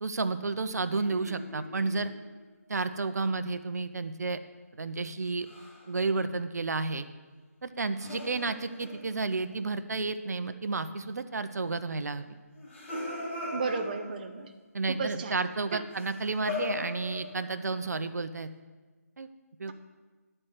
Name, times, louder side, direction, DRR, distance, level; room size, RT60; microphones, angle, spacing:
voice 1, 0.0-2.1 2.7-4.4 4.8-5.5 5.9-7.1 7.6-12.4 14.7-18.5 19.2-19.3 19.6-19.7, right 3 dB, 75° right, 10 dB, 0.7 m, -31 dB
sound 1, 1.0-2.4 5.4-5.9 8.0-9.7 12.5-14.4 15.9-17.7, left 2 dB, 45° left, 2.5 m, -40 dB
voice 2, 13.5-14.5 14.9-15.4 15.7-15.8, right 4 dB, 30° right, 5 dB, 0.6 m, -33 dB
11.0 x 4.4 x 7.9 m, 1.3 s
hypercardioid pair, 170°, 9 cm